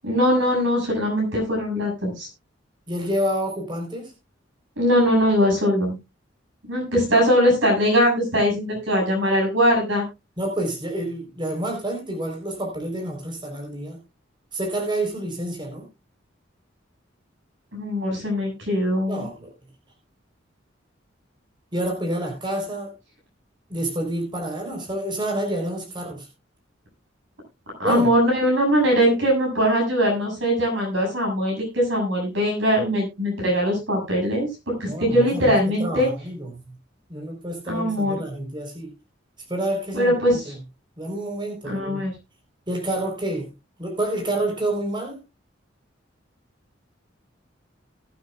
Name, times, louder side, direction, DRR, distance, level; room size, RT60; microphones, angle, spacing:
voice 1, 0.0-2.3 4.8-6.0 6.6-10.1 17.7-19.2 27.8-36.1 37.7-38.2 39.9-40.5 41.6-42.1, equal, 85° right, 0 dB, 7.2 m, -21 dB
voice 2, 2.9-4.1 10.4-14.0 14.5-15.9 19.1-19.5 21.7-22.9 23.7-26.3 27.8-28.1 34.9-36.8 37.1-38.9 39.5-40.1 40.4-40.6 41.0-42.1 42.7-43.5 43.8-45.2, right 1 dB, 25° right, 1 dB, 3.9 m, -28 dB
19.5 x 9.1 x 2.3 m, 0.25 s
head